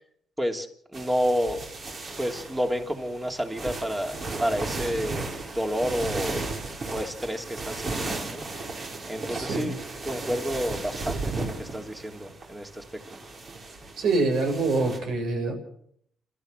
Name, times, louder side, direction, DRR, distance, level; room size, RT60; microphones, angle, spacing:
voice 1, 0.9-1.6 2.2-5.2 5.5-6.4 6.9-8.4 9.1-9.7 10.0-12.8, equal, 10° right, 4 dB, 3.1 m, -29 dB
sound 1, 0.9-15.0, right 3 dB, 45° right, 5.4 m, -35 dB
voice 2, 9.3-9.8 14.0-15.6, right 3 dB, 70° right, 4 dB, 7.9 m, -25 dB
29.5 x 13.5 x 6.7 m, 0.70 s
cardioid pair, 90°, 0 cm